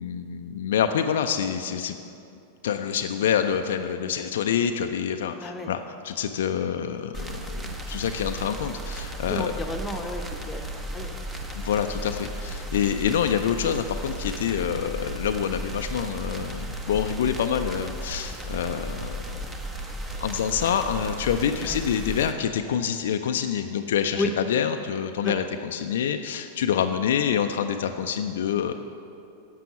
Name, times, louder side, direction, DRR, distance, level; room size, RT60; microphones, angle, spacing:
voice 1, 0.0-2.0 2.6-9.5 11.5-19.2 20.2-28.7, left 8 dB, 60° left, 6 dB, 0.5 m, -27 dB
voice 2, 5.4-5.7 9.3-11.1 21.6-21.8 24.2-24.3 25.2-25.3, left 2 dB, 10° left, 3 dB, 1.0 m, -32 dB
sound 1, 7.1-22.3, right 1 dB, 15° right, 1.1 m, -35 dB
11.0 x 7.6 x 7.1 m, 2.6 s
figure-of-eight pair, 90°, 0 cm